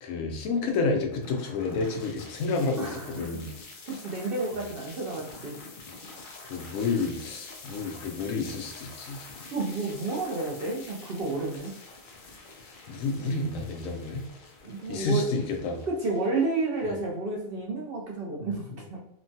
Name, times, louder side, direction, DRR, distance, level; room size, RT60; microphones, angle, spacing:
voice 1, 0.0-3.5 6.4-9.3 12.9-14.2 14.9-15.8 16.8-17.0 18.8-18.9, left 3 dB, 85° left, 4 dB, 1.0 m, -30 dB
sound 1, 1.1-17.1, left 3 dB, 65° left, 0.5 m, -47 dB
voice 2, 2.8-3.3 3.9-5.6 9.5-11.7 14.6-15.3 15.9-19.0, right 3 dB, 60° right, -3 dB, 0.6 m, -31 dB
3.0 x 2.1 x 2.6 m, 0.79 s
omnidirectional pair, 1.4 m